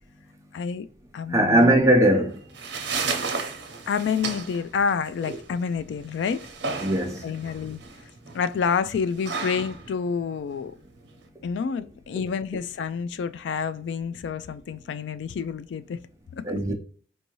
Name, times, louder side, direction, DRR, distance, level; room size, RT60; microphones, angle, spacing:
voice 1, 0.5-0.9 1.1-1.8 3.9-6.5 7.2-7.8 8.3-10.7 11.4-16.0 16.4-16.5, left 6 dB, 80° left, 0.3 m, -28 dB
voice 2, 1.3-2.4 5.2-5.4 6.8-7.3 16.4-16.7, right 1 dB, 15° right, 0.6 m, -20 dB
sound 1, 2.3-11.3, right 4 dB, 75° right, 0.7 m, -34 dB
4.5 x 2.7 x 3.0 m
head